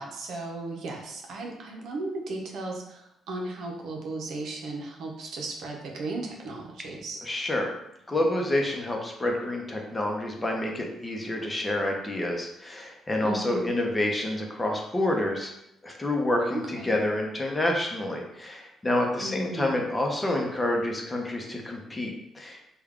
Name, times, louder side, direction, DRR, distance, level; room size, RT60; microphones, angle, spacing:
voice 1, 0.0-7.2 13.2-13.7 16.5-17.0 19.2-19.8, right 2 dB, 75° right, 0 dB, 0.7 m, -35 dB
voice 2, 7.2-7.7 8.1-15.5 15.8-22.6, left 1 dB, 20° left, 1 dB, 0.7 m, -28 dB
3.4 x 2.3 x 3.5 m, 0.82 s
cardioid pair, 90°, 0 cm